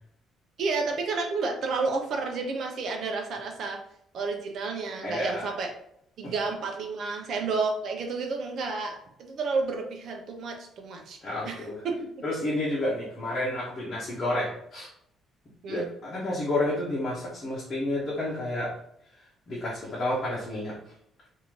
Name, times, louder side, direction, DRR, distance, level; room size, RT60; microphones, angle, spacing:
voice 1, 0.6-3.8 4.1-5.7 6.2-11.2 11.4-12.2 15.6-15.9, right 4 dB, 50° right, 3 dB, 0.7 m, -31 dB
voice 2, 5.0-5.5 6.2-6.3 11.2-11.8 12.2-14.9 15.7-18.7 19.5-20.8, left 1 dB, 25° left, -7 dB, 1.0 m, -30 dB
3.7 x 2.7 x 3.1 m, 0.72 s
cardioid pair, 165°, 0 cm